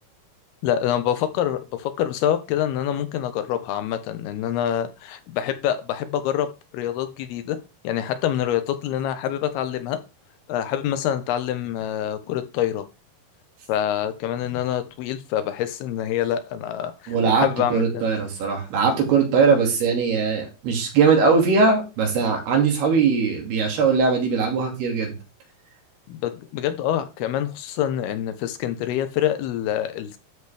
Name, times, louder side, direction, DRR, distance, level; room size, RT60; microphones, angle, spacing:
voice 1, 0.6-6.5 6.7-7.6 7.8-10.0 10.5-12.8 13.7-18.0 26.1-30.2, left 10 dB, 80° left, 10 dB, 2.8 m, -26 dB
voice 2, 17.1-25.1, right 5 dB, 75° right, 1 dB, 4.4 m, -20 dB
13.0 x 5.1 x 3.4 m, 0.29 s
omnidirectional pair, 4.6 m